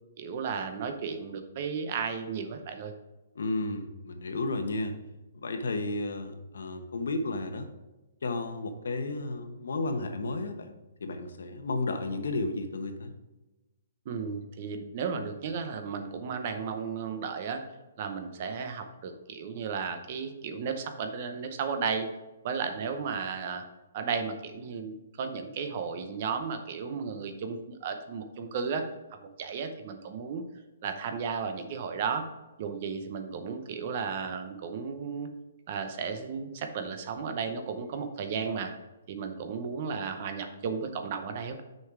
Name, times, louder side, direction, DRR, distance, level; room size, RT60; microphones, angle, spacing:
voice 1, 0.2-2.9 14.1-17.6 18.0-22.1 22.4-23.6 23.9-28.8 29.1-30.4 30.8-32.3 32.6-35.3 35.7-38.7 39.1-41.6, right 5 dB, 30° right, 7 dB, 0.7 m, -34 dB
voice 2, 3.3-5.0 5.3-7.7 8.2-10.7 11.0-13.1, left 2 dB, 85° left, 7 dB, 1.0 m, -32 dB
6.5 x 5.3 x 4.9 m, 1.1 s
hypercardioid pair, 175°, 0 cm